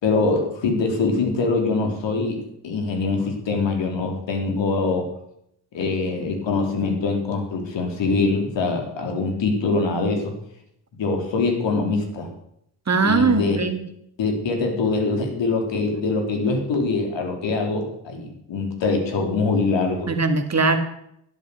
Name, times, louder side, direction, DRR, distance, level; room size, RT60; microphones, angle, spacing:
voice 1, 0.0-5.1 5.7-10.3 11.0-12.3 13.0-13.6 14.2-20.1, left 3 dB, 60° left, 3 dB, 3.7 m, -23 dB
voice 2, 12.9-13.8 20.1-20.8, right 4 dB, 30° right, 8 dB, 2.3 m, -20 dB
11.0 x 11.0 x 6.6 m, 0.73 s
hypercardioid pair, 50°, 49 cm